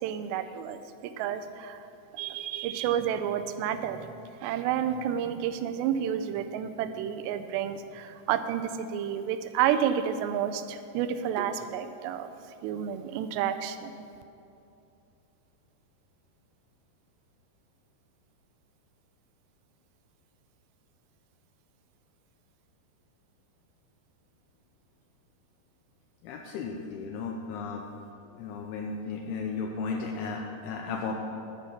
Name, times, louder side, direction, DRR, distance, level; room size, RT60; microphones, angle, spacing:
voice 1, 0.0-1.8 2.1-4.1 4.4-12.3 12.6-14.0, right 9 dB, 85° right, 10 dB, 2.8 m, -30 dB
voice 2, 26.2-27.9 28.4-31.1, left 4 dB, 80° left, 1 dB, 2.5 m, -35 dB
11.5 x 5.7 x 8.3 m, 2.7 s
omnidirectional pair, 4.9 m